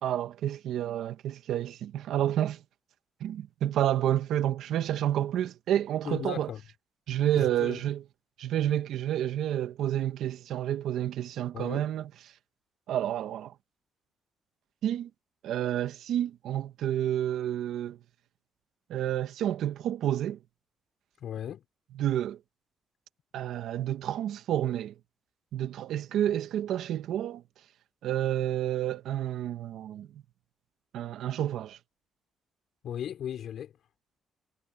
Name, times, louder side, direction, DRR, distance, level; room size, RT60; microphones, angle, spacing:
voice 1, 0.0-2.6 3.2-6.5 7.1-8.0 8.4-12.1 12.9-13.5 14.8-15.1 15.4-18.0 18.9-20.4 21.9-22.4 23.3-24.9 25.5-27.4 28.0-30.1 30.9-31.8, right 11 dB, 80° right, 1.6 m, -29 dB
voice 2, 6.0-6.6 7.3-7.8 11.5-11.9 21.2-21.6 32.8-33.7, left 10 dB, 70° left, 5.9 m, -36 dB
cardioid pair, 90°, 0 cm